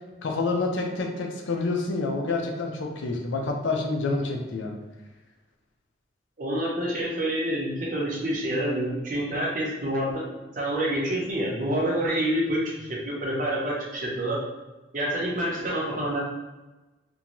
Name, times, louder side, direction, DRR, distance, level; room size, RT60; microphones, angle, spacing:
voice 1, 0.2-4.7, left 3 dB, 90° left, 3 dB, 0.4 m, -28 dB
voice 2, 6.4-10.2 10.5-14.4 14.9-16.2, right 1 dB, 45° right, -4 dB, 0.7 m, -27 dB
2.5 x 2.2 x 2.9 m, 1.1 s
head